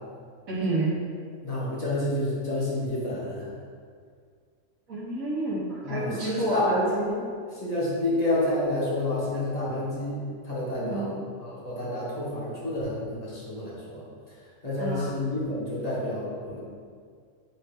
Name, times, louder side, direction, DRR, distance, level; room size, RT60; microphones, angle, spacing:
voice 1, 0.5-1.0 4.9-6.6 10.8-11.3 14.8-15.1, right 2 dB, 85° right, -10 dB, 1.8 m, -30 dB
voice 2, 1.4-3.5 5.8-7.2 7.5-10.2 10.4-11.1 11.4-14.0 14.6-16.6, left 1 dB, 30° left, -7 dB, 2.0 m, -29 dB
9.2 x 3.3 x 4.5 m, 2.1 s
omnidirectional pair, 1.4 m